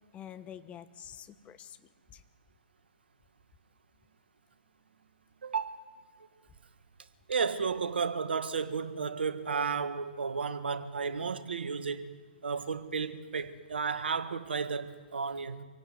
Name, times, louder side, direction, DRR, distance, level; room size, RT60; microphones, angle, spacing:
voice 1, 0.1-2.2, left 9 dB, 25° left, 1.2 m, -48 dB
voice 2, 5.4-5.8 7.3-12.1 12.4-15.6, right 5 dB, 80° right, 1.7 m, -33 dB
26.0 x 17.0 x 9.6 m
hypercardioid pair, 125°, 6 cm